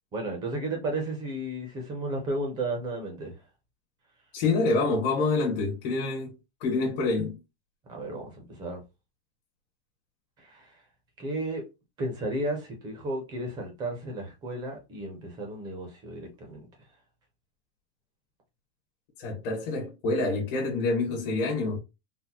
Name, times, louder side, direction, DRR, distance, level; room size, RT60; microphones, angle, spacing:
voice 1, 0.1-3.3 7.9-8.8 10.4-10.8 11.2-11.6 12.0-16.7, right 1 dB, 15° right, 0.4 m, -33 dB
voice 2, 4.3-6.3 6.6-7.4 19.2-21.8, left 3 dB, 45° left, 1.2 m, -27 dB
3.8 x 2.0 x 2.8 m
supercardioid pair, 175°, 33 cm